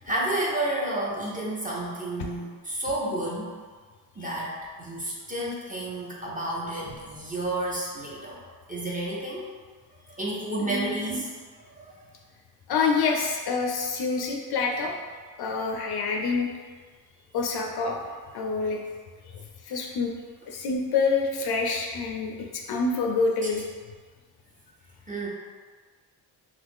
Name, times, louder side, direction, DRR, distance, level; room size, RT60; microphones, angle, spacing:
voice 1, 0.0-3.5 4.1-8.4 8.7-9.5 10.1-11.3 11.7-12.0 23.4-23.5 25.1-25.3, right 1 dB, 20° right, -5 dB, 0.7 m, -31 dB
voice 2, 10.6-11.3 12.7-14.9 15.4-16.5 17.3-18.0 18.3-18.8 19.7-20.1 20.5-23.6, left 4 dB, 55° left, 1 dB, 0.5 m, -27 dB
2.8 x 2.4 x 3.5 m, 1.5 s
cardioid pair, 95°, 45 cm